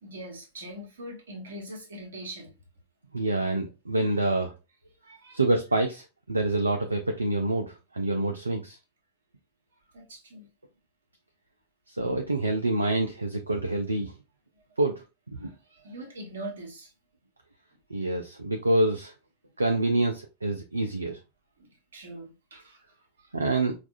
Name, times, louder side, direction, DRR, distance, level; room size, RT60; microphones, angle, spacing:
voice 1, 0.0-2.5 4.1-4.2 5.0-5.4 9.9-10.5 14.5-14.6 15.4-16.9 21.6-23.3, right 1 dB, 65° right, 1.1 m, -43 dB
voice 2, 3.1-4.5 5.3-8.8 11.9-14.1 14.8-15.0 15.3-15.5 17.9-19.1 19.6-21.2 23.3-23.7, right 2 dB, 80° right, 0.4 m, -27 dB
4.5 x 2.4 x 2.5 m
figure-of-eight pair, 90°, 0 cm